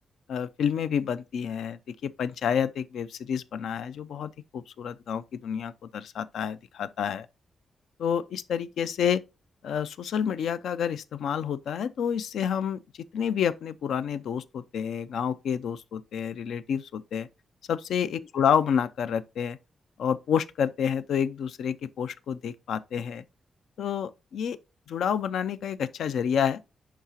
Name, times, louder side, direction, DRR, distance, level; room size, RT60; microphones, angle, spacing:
voice 1, 0.3-7.3 8.0-9.2 9.6-12.8 13.1-17.3 17.7-19.6 20.0-23.2 23.8-24.6 24.9-26.6, left 8 dB, 90° left, 0.4 m, -29 dB
10.5 x 3.7 x 2.9 m
wide cardioid pair, 130°, 0 cm